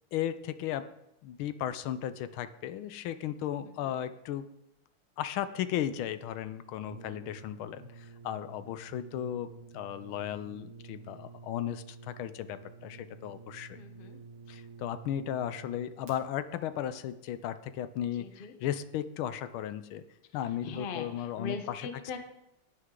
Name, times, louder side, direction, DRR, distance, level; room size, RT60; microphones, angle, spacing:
voice 1, 0.1-0.9 1.2-4.4 5.2-13.8 14.5-20.0 20.3-21.9, left 11 dB, 80° left, 12 dB, 1.4 m, -35 dB
voice 2, 3.6-4.0 13.7-14.2 18.1-18.5 20.3-22.2, left 4 dB, 45° left, 6 dB, 0.7 m, -41 dB
Brass instrument, 6.8-16.2, right 4 dB, 75° right, 3.2 m, -50 dB
18.5 x 6.4 x 3.7 m, 0.85 s
omnidirectional pair, 2.4 m